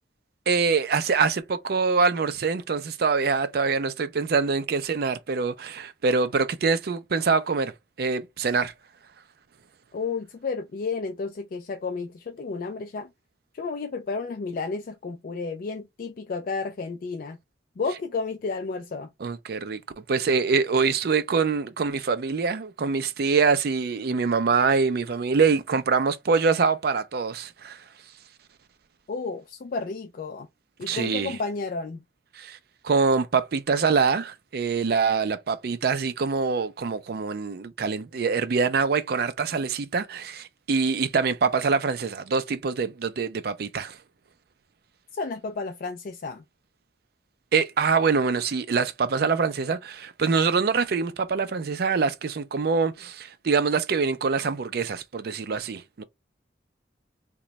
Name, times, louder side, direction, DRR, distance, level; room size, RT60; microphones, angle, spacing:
voice 1, 0.5-7.7 8.0-8.7 19.2-27.8 30.9-31.4 32.3-32.6 32.8-44.0 47.5-56.0, right 5 dB, 55° right, 0.4 m, -24 dB
voice 2, 9.9-13.1 13.5-17.4 17.8-19.1 29.1-30.5 30.8-32.0 45.1-46.4, left 4 dB, 50° left, 0.3 m, -32 dB
3.0 x 2.2 x 3.8 m
head